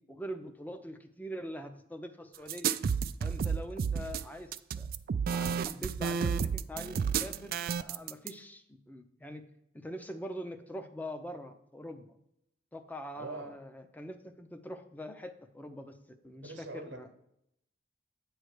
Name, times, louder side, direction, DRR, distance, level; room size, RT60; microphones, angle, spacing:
voice 1, 0.0-2.7 3.2-4.5 4.8-4.9 5.3-9.4 9.7-12.1 12.7-17.1, equal, 10° left, 7 dB, 0.6 m, -43 dB
sound 1, 2.5-8.3, right 6 dB, 55° right, 0.3 m, -31 dB
voice 2, 13.2-13.6 16.4-17.2, right 2 dB, 90° right, 5 dB, 1.0 m, -43 dB
8.9 x 3.2 x 6.4 m, 0.78 s
head